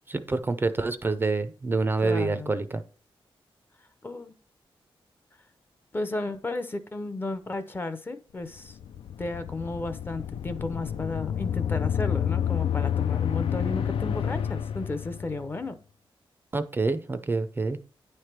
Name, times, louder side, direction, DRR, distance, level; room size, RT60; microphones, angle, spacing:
voice 1, 0.1-2.8 16.5-17.8, right 3 dB, 20° right, 0.4 m, -27 dB
voice 2, 2.0-2.5 4.0-4.3 5.9-8.8 9.2-15.7, left 2 dB, 20° left, 0.6 m, -33 dB
sound 1, 8.6-15.5, left 9 dB, 75° left, 0.4 m, -29 dB
9.6 x 3.3 x 5.8 m
wide cardioid pair, 165°, 9 cm